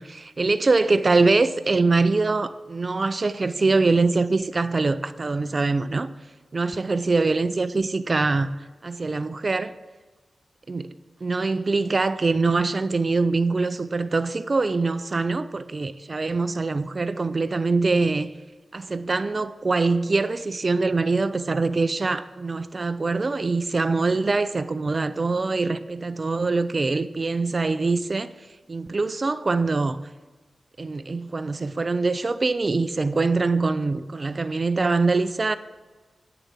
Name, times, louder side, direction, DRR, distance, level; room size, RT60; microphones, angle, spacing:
voice 1, 0.0-6.1 6.5-9.7 10.7-11.0 11.2-18.3 18.7-30.0 30.8-35.6, right 3 dB, 40° right, 0.4 m, -23 dB
9.4 x 6.8 x 7.5 m
cardioid pair, 65°, 0 cm